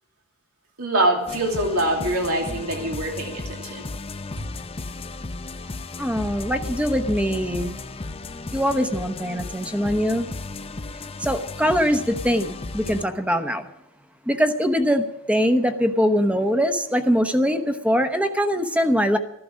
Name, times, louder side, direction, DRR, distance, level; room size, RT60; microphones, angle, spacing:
voice 1, 0.8-3.9 4.4-4.5, right 1 dB, 80° right, 2 dB, 2.6 m, -24 dB
sound 1, 1.3-13.0, left 3 dB, 25° left, 0.6 m, -35 dB
voice 2, 6.0-7.8 8.5-10.3 11.2-13.7 14.3-19.2, equal, 5° right, 7 dB, 0.9 m, -22 dB
15.0 x 12.0 x 6.3 m, 0.83 s
head